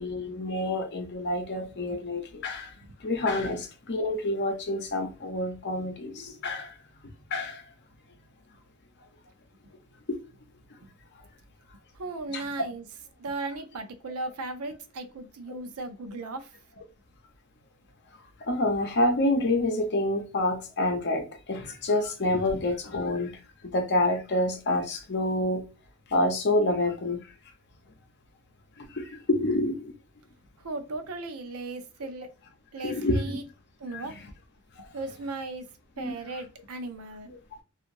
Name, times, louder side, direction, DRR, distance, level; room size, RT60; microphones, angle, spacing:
voice 1, 0.0-2.7 3.0-6.7 7.3-7.6 10.1-10.2 12.3-12.4 18.5-23.3 23.7-25.6 26.1-27.2 29.0-29.9 32.8-33.4 33.9-34.1 36.0-36.1 37.3-37.4, left 1 dB, 50° left, 0.7 m, -27 dB
voice 2, 12.0-12.8 13.2-16.5 30.6-32.3 32.7-33.5 33.8-34.2 34.9-35.6 36.0-37.3, right 2 dB, 90° right, 0.5 m, -36 dB
2.9 x 2.4 x 2.5 m
head